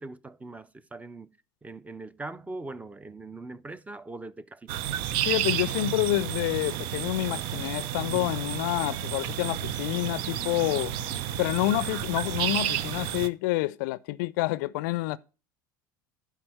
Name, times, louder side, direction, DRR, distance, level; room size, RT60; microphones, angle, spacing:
voice 1, 0.0-1.3 1.6-4.8, right 2 dB, 15° right, 0.7 m, -41 dB
sound 1, 4.7-13.3, right 11 dB, 55° right, 0.7 m, -31 dB
voice 2, 5.2-10.9 11.4-15.2, left 17 dB, 60° left, 0.5 m, -28 dB
11.5 x 4.9 x 6.4 m
figure-of-eight pair, 70°, 11 cm